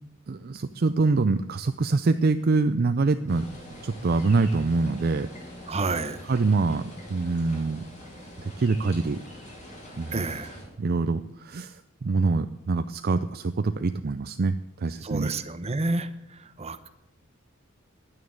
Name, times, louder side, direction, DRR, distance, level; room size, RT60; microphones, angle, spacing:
voice 1, 0.3-3.5 3.8-5.3 6.3-7.9 8.6-9.2 10.0-10.2 10.8-15.3, right 3 dB, 45° right, 10 dB, 0.5 m, -25 dB
sound 1, 3.3-10.6, equal, 35° left, 5.5 m, -44 dB
voice 2, 5.7-6.2 10.1-10.5 15.0-16.9, right 3 dB, 30° right, 10 dB, 0.9 m, -30 dB
11.0 x 9.5 x 8.2 m, 0.92 s
head